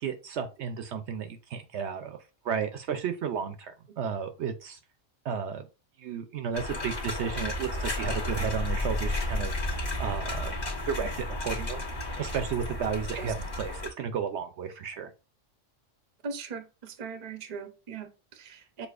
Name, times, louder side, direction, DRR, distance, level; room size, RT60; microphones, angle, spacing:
voice 1, 0.0-2.2 2.4-4.8 5.2-5.6 6.0-9.5 10.0-10.5 10.8-11.8 12.2-15.1, right 7 dB, 70° right, 0.8 m, -33 dB
sound 1, 6.5-13.9, left 1 dB, 35° left, 1.2 m, -32 dB
voice 2, 16.2-18.9, right 5 dB, 40° right, 0.6 m, -40 dB
6.3 x 2.8 x 2.4 m
omnidirectional pair, 1.3 m